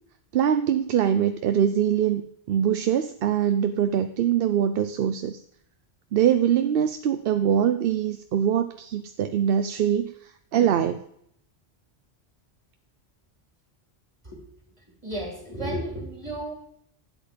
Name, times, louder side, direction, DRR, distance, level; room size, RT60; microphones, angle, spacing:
voice 1, 0.3-2.2 2.5-5.4 6.1-11.0, right 9 dB, 65° right, 10 dB, 0.7 m, -23 dB
voice 2, 15.0-16.5, right 1 dB, 30° right, 1 dB, 3.0 m, -33 dB
12.0 x 8.2 x 5.1 m, 0.71 s
omnidirectional pair, 1.1 m